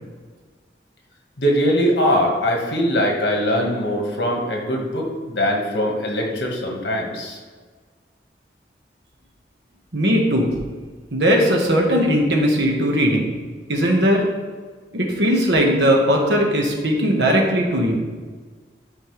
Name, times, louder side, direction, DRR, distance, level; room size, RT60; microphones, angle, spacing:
voice 1, 1.4-7.4, equal, 75° left, 0 dB, 1.6 m, -21 dB
voice 2, 9.9-10.5 11.1-13.3 13.7-14.2 14.9-18.1, equal, 85° right, 0 dB, 1.5 m, -18 dB
11.5 x 4.4 x 3.3 m, 1.5 s
head